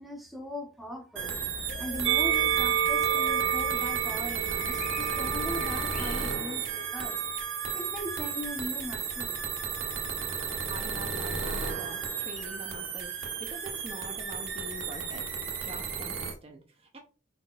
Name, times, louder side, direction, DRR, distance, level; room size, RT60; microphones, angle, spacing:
voice 1, 0.0-1.4 1.8-7.2 7.7-9.4, left 1 dB, ahead, 0.8 m, -39 dB
sound 1, 1.2-6.3, left 3 dB, 45° left, 0.5 m, -42 dB
sound 2, 1.2-16.3, right 6 dB, 90° right, 1.3 m, -34 dB
Musical instrument, 2.0-8.5 9.3-10.3, right 9 dB, 70° right, 0.4 m, -31 dB
voice 2, 10.7-15.2 15.5-17.0, right 2 dB, 30° right, 0.6 m, -45 dB
5.0 x 4.3 x 2.4 m
head